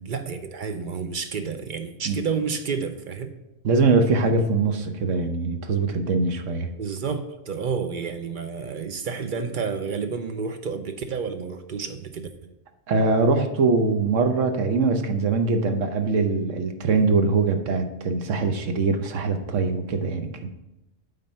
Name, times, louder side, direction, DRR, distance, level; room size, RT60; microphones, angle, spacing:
voice 1, 0.1-3.3 6.8-12.6, right 5 dB, 55° right, 8 dB, 0.6 m, -30 dB
voice 2, 3.6-6.7 12.9-20.5, right 3 dB, 80° right, 7 dB, 1.2 m, -22 dB
8.7 x 3.9 x 5.5 m, 0.91 s
omnidirectional pair, 1.3 m